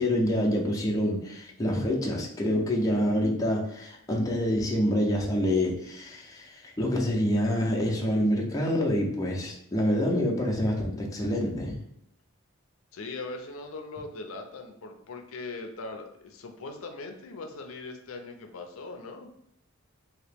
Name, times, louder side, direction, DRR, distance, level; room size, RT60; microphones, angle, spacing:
voice 1, 0.0-11.8, left 1 dB, 15° left, -2 dB, 0.6 m, -27 dB
voice 2, 12.9-19.3, left 3 dB, 75° left, 4 dB, 0.5 m, -40 dB
2.8 x 2.8 x 3.4 m, 0.77 s
head